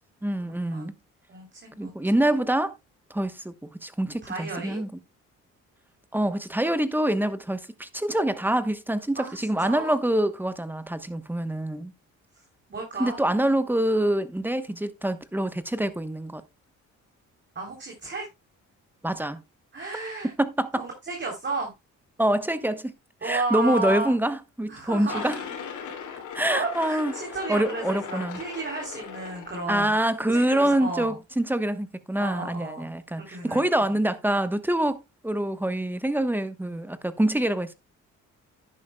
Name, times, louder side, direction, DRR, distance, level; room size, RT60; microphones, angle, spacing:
voice 1, 0.2-0.9 1.8-2.7 3.1-4.9 6.1-11.9 13.0-16.4 19.0-19.4 20.4-20.8 22.2-22.9 23.2-25.4 26.3-27.1 27.5-28.4 29.7-37.7, right 1 dB, 5° right, 1.0 m, -25 dB
voice 2, 1.3-1.9 4.2-4.8 9.2-10.0 12.7-13.4 14.7-14.8 17.6-18.3 19.7-20.3 20.8-21.7 23.2-24.2 24.7-25.5 26.5-31.2 32.2-32.9 33.2-33.6, right 3 dB, 35° right, 3.6 m, -33 dB
sound 1, 25.1-30.0, left 7 dB, 80° left, 2.8 m, -38 dB
11.0 x 10.5 x 2.3 m
cardioid pair, 90°, 30 cm